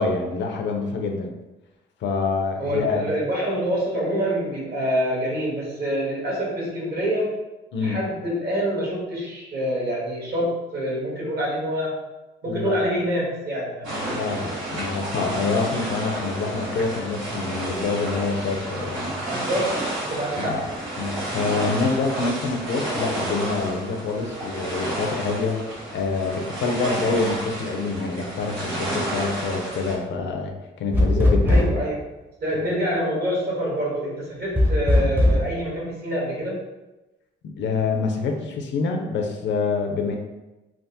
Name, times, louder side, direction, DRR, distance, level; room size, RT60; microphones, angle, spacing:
voice 1, 0.0-1.3 2.0-3.1 7.7-8.0 12.5-12.8 13.8-19.2 20.4-20.6 21.0-30.5 30.8-31.6 37.6-40.2, left 4 dB, 65° left, 3 dB, 0.6 m, -26 dB
voice 2, 2.6-7.3 7.8-11.9 12.4-14.2 19.3-19.8 20.1-20.6 31.5-32.0 32.4-36.6, equal, 55° right, -5 dB, 1.3 m, -26 dB
sound 1, 13.8-30.0, right 1 dB, 80° right, 1.2 m, -31 dB
sound 2, 30.9-31.9 34.5-35.5, left 1 dB, 10° right, 0.6 m, -18 dB
3.5 x 2.0 x 2.7 m, 1.0 s
cardioid pair, 90°, 20 cm